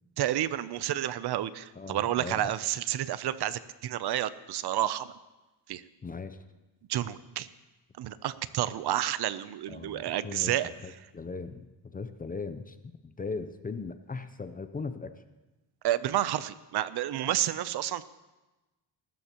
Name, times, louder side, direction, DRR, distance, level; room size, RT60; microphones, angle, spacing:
voice 1, 0.2-5.1 5.7-5.8 6.9-7.5 8.0-10.7 15.8-18.0, right 12 dB, 55° right, 15 dB, 0.7 m, -30 dB
voice 2, 1.8-2.5 6.0-6.4 9.7-15.2, left 4 dB, 20° left, 10 dB, 0.5 m, -39 dB
22.5 x 13.0 x 3.0 m, 1.1 s
cardioid pair, 125°, 46 cm